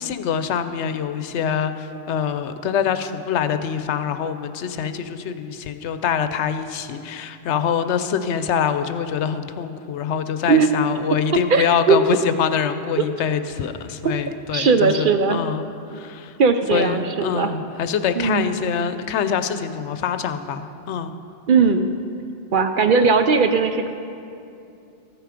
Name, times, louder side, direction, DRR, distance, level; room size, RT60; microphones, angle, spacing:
voice 1, 0.0-16.4 16.7-21.1, left 7 dB, 80° left, 10 dB, 0.9 m, -25 dB
voice 2, 11.5-12.0 14.0-14.1 14.5-15.4 16.4-17.5 18.2-18.5 21.5-21.9 22.5-23.9, right 5 dB, 60° right, 7 dB, 0.6 m, -18 dB
13.5 x 9.2 x 5.0 m, 2.7 s
omnidirectional pair, 1.2 m